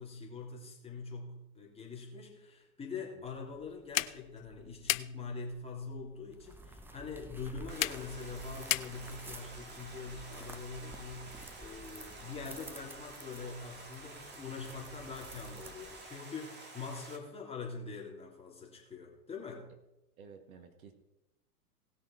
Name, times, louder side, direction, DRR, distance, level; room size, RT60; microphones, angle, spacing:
voice 1, 0.0-19.7, left 4 dB, 15° left, -2 dB, 3.2 m, -44 dB
sound 1, 3.2-9.4, left 14 dB, 60° left, 0.7 m, -38 dB
sound 2, 6.3-16.2, right 2 dB, 5° right, 0.6 m, -51 dB
Stream, 7.7-17.2, right 2 dB, 20° right, 2.1 m, -50 dB
voice 2, 20.2-20.9, right 6 dB, 65° right, 7 dB, 1.8 m, -53 dB
18.0 x 6.3 x 4.8 m, 0.92 s
hypercardioid pair, 105°, 46 cm